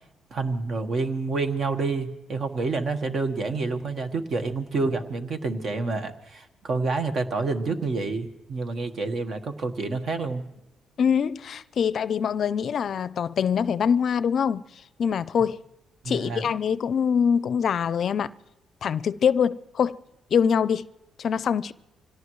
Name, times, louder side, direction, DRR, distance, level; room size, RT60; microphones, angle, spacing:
voice 1, 0.3-10.4 16.0-16.4, right 3 dB, 55° right, 1.4 m, -28 dB
voice 2, 11.0-14.6 15.0-15.6 16.1-18.3 18.8-20.0 20.3-20.9 21.2-21.7, left 7 dB, 55° left, 0.4 m, -24 dB
25.5 x 17.5 x 3.1 m
cardioid pair, 90°, 0 cm